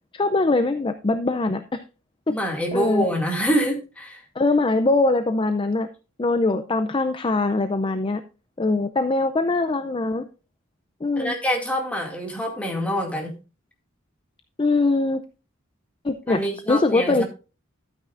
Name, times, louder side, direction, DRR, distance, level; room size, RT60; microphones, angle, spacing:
voice 1, 0.1-1.8 2.3-2.4 2.7-3.1 4.4-5.9 6.2-8.2 8.6-10.2 11.0-11.3 14.6-15.2 16.0-16.4 16.7-17.2, left 2 dB, 25° left, 9 dB, 0.5 m, -22 dB
voice 2, 2.3-4.2 11.2-13.3 16.3-17.2, equal, 5° left, 1 dB, 2.3 m, -26 dB
12.5 x 9.0 x 2.5 m, 0.32 s
head